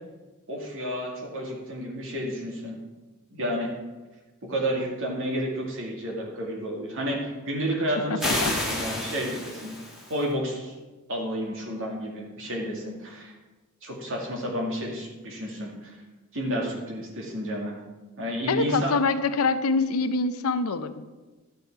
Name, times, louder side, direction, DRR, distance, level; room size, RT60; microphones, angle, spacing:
voice 1, 0.5-2.8 3.3-3.7 4.4-9.8 10.1-10.7 11.1-13.3 13.8-16.0 16.3-17.8 18.2-19.0, equal, 65° right, 0 dB, 2.2 m, -31 dB
voice 2, 8.1-8.5 18.5-21.1, left 4 dB, 75° left, 11 dB, 0.6 m, -25 dB
sound 1, 8.2-10.2, left 1 dB, ahead, 1.9 m, -30 dB
11.5 x 7.0 x 4.5 m, 1.2 s
head